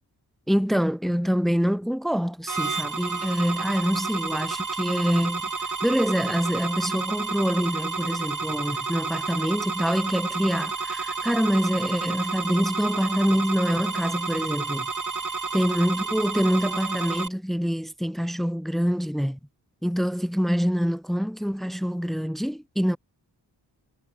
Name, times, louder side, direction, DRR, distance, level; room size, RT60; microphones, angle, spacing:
voice 1, 0.5-5.5 5.8-14.9 15.5-19.4 19.8-23.0, equal, ahead, 1.6 m, -25 dB
sound 1, 2.5-17.3, right 4 dB, 45° right, 2.5 m, -30 dB
cardioid pair, 60°, 41 cm